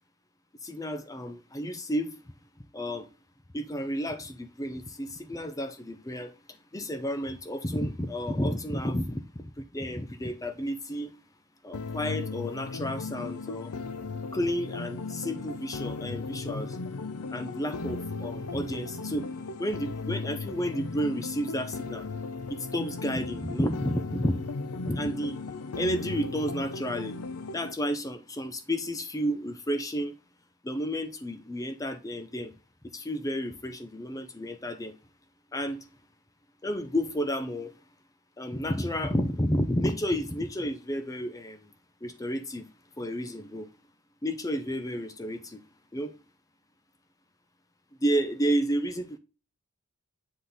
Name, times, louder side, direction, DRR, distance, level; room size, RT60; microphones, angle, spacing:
voice 1, 0.6-2.2 2.7-3.1 3.5-11.1 11.6-13.7 14.3-16.8 17.3-19.3 19.6-22.1 22.5-24.4 24.9-25.4 25.8-27.2 27.5-30.2 30.6-32.5 32.9-35.0 35.5-35.9 36.6-37.7 38.4-41.7 42.0-42.7 43.0-43.7 44.2-45.6 45.9-46.1 48.0-49.2, equal, 15° left, 0.6 m, -31 dB
sound 1, 11.7-27.7, left 3 dB, 85° left, 0.7 m, -36 dB
7.8 x 3.9 x 4.0 m
head